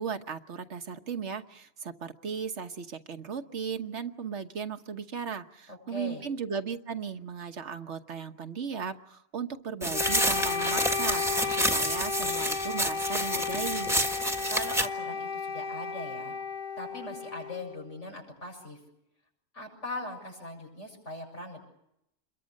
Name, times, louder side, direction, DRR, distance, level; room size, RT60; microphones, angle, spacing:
voice 1, 0.0-11.2 11.5-14.0, right 6 dB, 75° right, 8 dB, 1.5 m, -36 dB
voice 2, 5.7-6.2 14.5-16.3 16.8-18.8 19.5-21.6, left 1 dB, 90° left, 2 dB, 7.9 m, -40 dB
sound 1, 9.8-14.9, equal, ahead, 1.5 m, -29 dB
Wind instrument woodwind instrument, 9.9-18.0, left 5 dB, 45° left, 1.3 m, -34 dB
28.5 x 22.5 x 6.5 m, 0.79 s
omnidirectional pair, 1.2 m